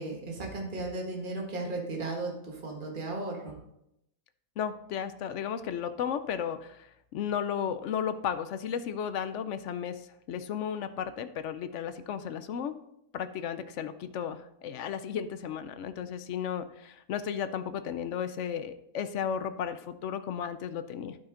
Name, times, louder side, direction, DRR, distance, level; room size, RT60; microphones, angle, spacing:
voice 1, 0.0-3.5, right 2 dB, 35° right, 0 dB, 1.6 m, -35 dB
voice 2, 4.6-12.8 13.1-21.2, left 8 dB, 65° left, 11 dB, 0.8 m, -34 dB
11.5 x 5.8 x 3.8 m, 0.80 s
omnidirectional pair, 1.6 m